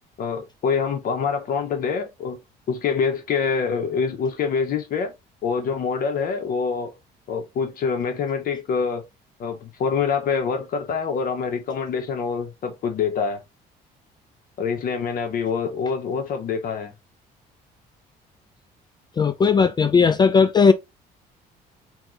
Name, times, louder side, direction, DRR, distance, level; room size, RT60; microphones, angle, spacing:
voice 1, 0.2-2.4 2.7-5.1 5.4-7.0 7.3-9.0 9.4-13.4 14.6-16.9, left 6 dB, 55° left, 0.9 m, -25 dB
voice 2, 19.2-20.7, left 5 dB, 25° left, 0.4 m, -17 dB
4.6 x 2.7 x 3.8 m
cardioid pair, 110°, 17 cm